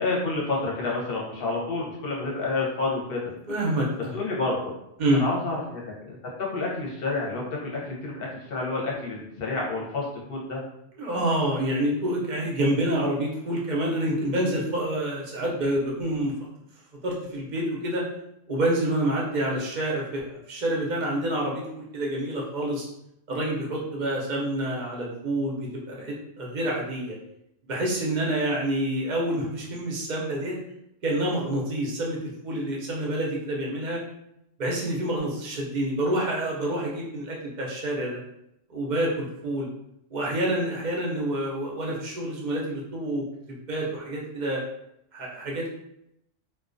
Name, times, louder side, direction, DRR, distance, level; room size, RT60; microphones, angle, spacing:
voice 1, 0.0-3.3 4.1-4.7 5.2-6.2 6.5-10.6, left 3 dB, 55° left, -3 dB, 0.8 m, -29 dB
voice 2, 3.5-4.2 5.0-5.2 11.0-16.3 17.0-18.0 18.5-22.9 23.3-27.1 27.6-30.6 31.0-34.0 34.6-38.2 38.7-39.7 40.1-44.6 45.1-45.7, right 1 dB, 50° right, -3 dB, 0.5 m, -27 dB
2.2 x 2.2 x 2.5 m, 0.79 s
omnidirectional pair, 1.3 m